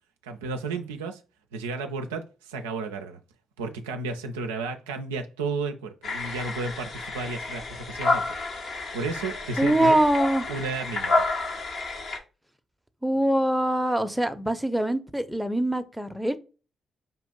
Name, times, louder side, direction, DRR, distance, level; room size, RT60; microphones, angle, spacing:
voice 1, 0.2-1.2 1.5-3.2 3.6-9.9 10.5-11.2, right 3 dB, 85° right, 0.4 m, -33 dB
sound 1, 6.0-12.2, left 3 dB, 60° left, 1.1 m, -30 dB
voice 2, 9.6-10.5 13.0-16.4, right 1 dB, ahead, 0.7 m, -23 dB
5.4 x 2.4 x 3.8 m
hypercardioid pair, 40°, 0 cm